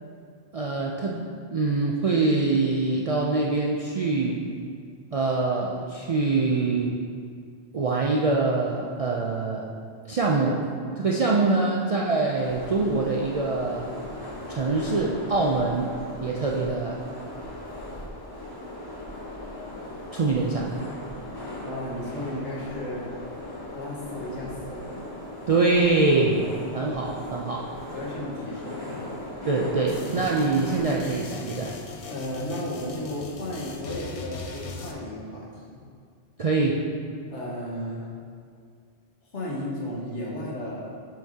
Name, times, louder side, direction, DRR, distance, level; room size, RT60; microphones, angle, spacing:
voice 1, 0.5-4.4 5.1-6.9 7.7-9.6 10.1-10.6 11.0-13.9 14.5-15.9 16.2-17.0 20.1-20.7 25.5-26.5 26.7-27.7 29.5-31.7 36.4-36.8, right 3 dB, 60° right, -3 dB, 0.3 m, -24 dB
sound 1, 12.3-31.0, left 1 dB, 20° left, 1.1 m, -38 dB
voice 2, 21.6-23.0 23.7-24.8 27.9-29.2 32.1-35.8 37.3-38.1 39.3-41.0, left 1 dB, 85° left, -4 dB, 1.6 m, -34 dB
sound 2, 29.9-34.9, left 4 dB, 55° left, 0.4 m, -40 dB
7.4 x 5.8 x 2.8 m, 2.2 s
omnidirectional pair, 1.2 m